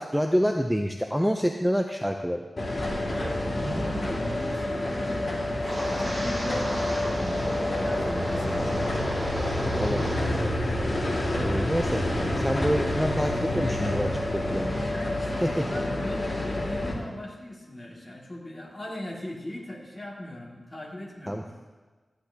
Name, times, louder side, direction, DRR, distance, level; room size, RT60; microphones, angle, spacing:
voice 1, 0.0-2.5 9.8-10.4 11.4-14.8 15.4-15.6 21.3-21.4, equal, 5° right, 3 dB, 0.5 m, -27 dB
sound 1, 2.6-16.9, left 1 dB, 40° left, 2.0 m, -28 dB
sound 2, 2.8-7.1, right 1 dB, 75° right, 1.8 m, -41 dB
voice 2, 2.9-7.4 7.7-9.3 10.8-12.1 14.9-21.4, left 1 dB, 25° left, -3 dB, 2.2 m, -40 dB
Wind, 5.6-10.4 10.7-11.2 11.6-11.9, right 1 dB, 25° right, 3.3 m, -35 dB
13.5 x 10.0 x 2.8 m, 1.3 s
wide cardioid pair, 105°, 0 cm